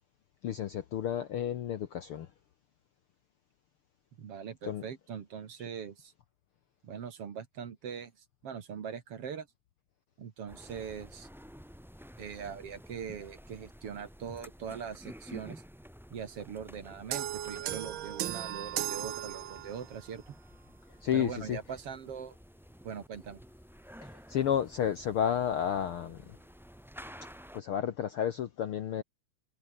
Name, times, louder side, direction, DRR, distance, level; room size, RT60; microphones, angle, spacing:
voice 1, 0.4-2.3 4.6-4.8 21.0-21.6 24.0-26.4 27.5-29.0, left 9 dB, 60° left, 1.5 m, -31 dB
voice 2, 4.2-6.1 6.8-9.5 10.2-11.3 12.2-15.6 16.1-20.4 21.1-22.4 22.8-23.4, right 7 dB, 50° right, 2.6 m, -41 dB
sound 1, 10.5-27.6, equal, ahead, 1.8 m, -52 dB
sound 2, 17.1-20.0, right 12 dB, 80° right, 1.1 m, -36 dB
omnidirectional pair, 3.5 m